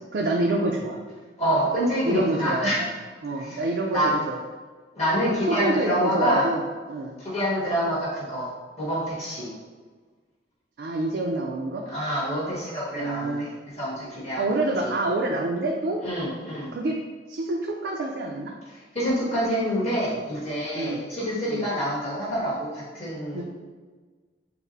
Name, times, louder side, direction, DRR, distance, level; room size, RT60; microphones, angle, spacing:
voice 1, 0.1-1.0 2.0-2.9 3.2-4.4 5.5-6.6 6.9-7.2 10.8-11.8 13.0-13.5 14.4-16.0 16.7-16.9 17.3-18.5 20.7-21.0 21.5-21.6 23.3-23.4, right 2 dB, 65° right, -1 dB, 0.4 m, -26 dB
voice 2, 1.4-2.8 3.4-3.6 3.9-4.1 5.0-6.5 7.2-8.5 8.8-9.5 11.9-13.5 13.8-14.9 16.0-16.7 18.7-23.4, equal, 35° left, -8 dB, 1.4 m, -27 dB
5.8 x 2.0 x 2.7 m, 1.4 s
head